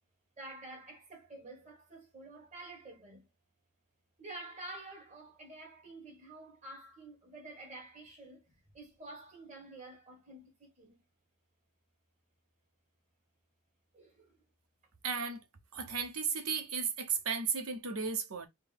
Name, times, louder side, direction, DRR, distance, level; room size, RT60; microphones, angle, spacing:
voice 1, 0.4-3.3 4.2-11.0 13.9-14.4, right 2 dB, 35° right, 1.8 m, -49 dB
voice 2, 15.0-15.4 15.7-18.5, right 5 dB, 80° right, 0.9 m, -34 dB
4.3 x 2.2 x 3.5 m
head